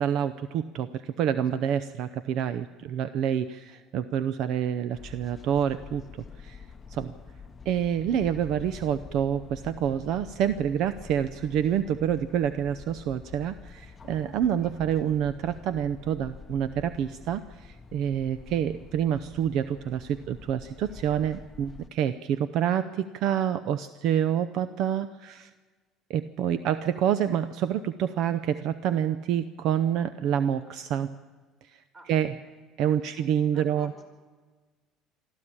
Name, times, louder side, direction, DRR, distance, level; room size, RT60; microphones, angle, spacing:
voice 1, 0.0-6.6 6.9-7.1 7.7-25.5 26.1-31.1 31.7-31.8 32.1-32.3 32.8-33.9, right 9 dB, 60° right, 13 dB, 0.6 m, -27 dB
sound 1, 4.9-21.9, left 5 dB, 20° left, 0.8 m, -47 dB
voice 2, 31.9-32.5 33.0-34.0, right 1 dB, 25° right, 5 dB, 4.8 m, -55 dB
23.5 x 13.5 x 8.7 m, 1.4 s
cardioid pair, 135°, 0 cm